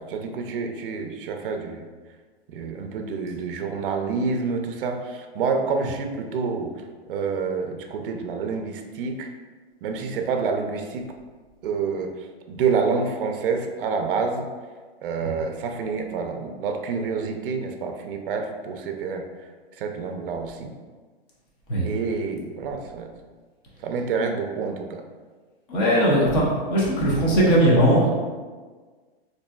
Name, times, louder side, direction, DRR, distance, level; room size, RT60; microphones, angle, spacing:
voice 1, 0.0-1.8 2.5-6.7 7.1-9.3 9.8-11.1 11.6-12.1 12.5-14.5 15.0-19.2 19.8-20.7 21.8-23.1 23.8-25.0, right 5 dB, 60° right, 4 dB, 0.5 m, -28 dB
voice 2, 25.7-28.1, right 1 dB, 15° left, -4 dB, 0.4 m, -19 dB
4.0 x 2.6 x 2.2 m, 1.4 s
hypercardioid pair, 155°, 31 cm